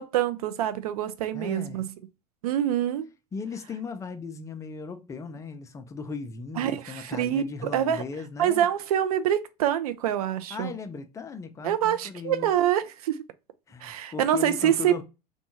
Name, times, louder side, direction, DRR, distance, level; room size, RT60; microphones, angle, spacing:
voice 1, 0.0-1.9 2.4-3.1 6.6-8.0 8.4-10.7 11.6-13.2 13.8-15.0, right 10 dB, 65° right, 0.4 m, -26 dB
voice 2, 1.3-1.8 3.3-8.7 10.5-12.5 13.7-15.0, left 5 dB, 15° left, 0.4 m, -37 dB
2.6 x 2.2 x 2.7 m
figure-of-eight pair, 80°, 21 cm